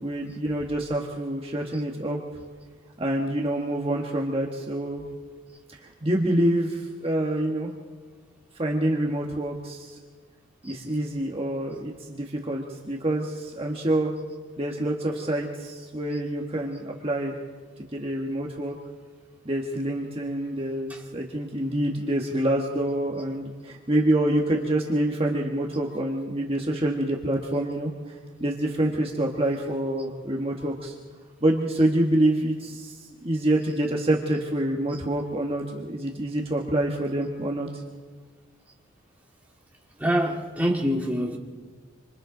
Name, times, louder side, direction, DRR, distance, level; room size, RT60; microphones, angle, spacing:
voice 1, 0.0-2.2 3.0-5.0 5.7-7.7 8.5-10.0 10.6-14.1 14.6-17.3 17.8-18.8 19.4-31.0 31.4-37.8, right 1 dB, 25° right, 1.5 m, -26 dB
voice 2, 40.0-41.4, equal, 5° right, 2.1 m, -25 dB
26.5 x 25.5 x 3.9 m
head